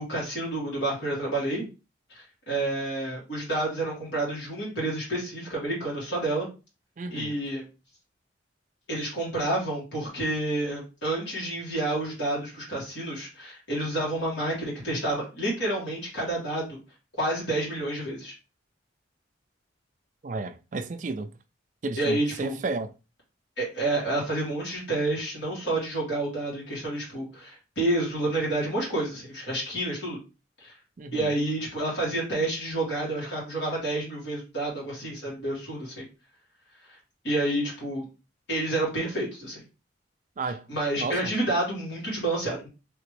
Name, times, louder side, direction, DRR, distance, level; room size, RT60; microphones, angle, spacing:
voice 1, 0.0-1.7 2.1-6.5 7.1-7.6 8.9-16.8 17.2-18.3 22.0-22.5 23.6-30.2 30.6-30.7 31.1-36.0 37.2-38.0 38.5-39.6 40.7-42.7, right 2 dB, 65° left, 1.7 m, -29 dB
voice 2, 7.0-7.4 20.2-21.3 21.8-22.9 31.0-31.3 40.4-40.7 41.0-41.3, right 3 dB, 40° right, 0.3 m, -32 dB
3.4 x 2.9 x 3.2 m
head